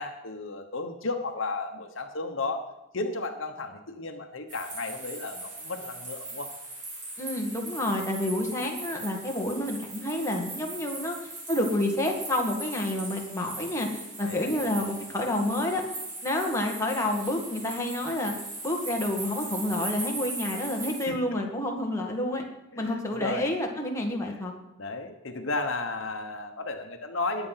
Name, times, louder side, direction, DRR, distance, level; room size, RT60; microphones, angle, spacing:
voice 1, 0.0-2.6 2.9-6.5 14.2-14.9 21.1-21.2 22.7-23.4 24.2-24.4 24.8-27.5, left 3 dB, 65° left, 5 dB, 1.2 m, -34 dB
sound 1, 4.5-21.0, right 2 dB, 35° right, 4.4 m, -39 dB
voice 2, 7.2-11.2 11.5-15.8 16.2-18.3 18.6-22.4 22.8-24.5, left 1 dB, 15° left, 0 dB, 1.9 m, -29 dB
20.5 x 8.0 x 5.8 m, 0.92 s
head